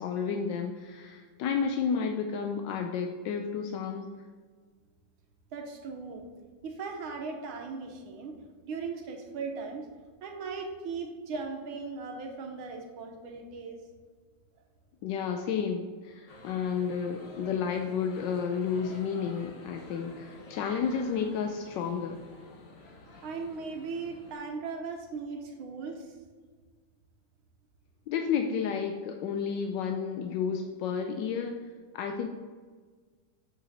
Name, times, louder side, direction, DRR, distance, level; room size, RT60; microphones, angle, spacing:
voice 1, 0.0-4.1 15.0-22.2 28.1-31.6 31.9-32.3, left 6 dB, 75° left, 4 dB, 1.1 m, -31 dB
voice 2, 5.5-6.2 6.6-8.4 8.6-9.9 10.2-13.8 23.2-26.1, right 4 dB, 75° right, 3 dB, 1.6 m, -38 dB
sound 1, 16.3-24.3, left 2 dB, 50° left, 1.1 m, -50 dB
7.1 x 5.5 x 4.0 m, 1.5 s
omnidirectional pair, 2.4 m